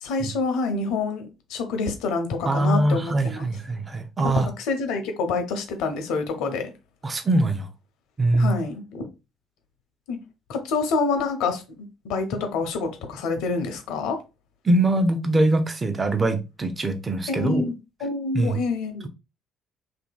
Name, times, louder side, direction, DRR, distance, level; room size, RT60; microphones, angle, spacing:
voice 1, 0.0-3.5 4.6-6.7 8.3-9.1 10.1-10.2 10.5-11.6 12.0-14.2 17.3-17.7 18.0-19.1, left 4 dB, 70° left, 0.6 m, -27 dB
voice 2, 2.5-4.5 7.0-7.7 8.2-8.5 14.6-17.7 18.3-18.6, right 2 dB, 30° right, 0.5 m, -22 dB
2.8 x 2.6 x 2.2 m
hypercardioid pair, 55°, 0 cm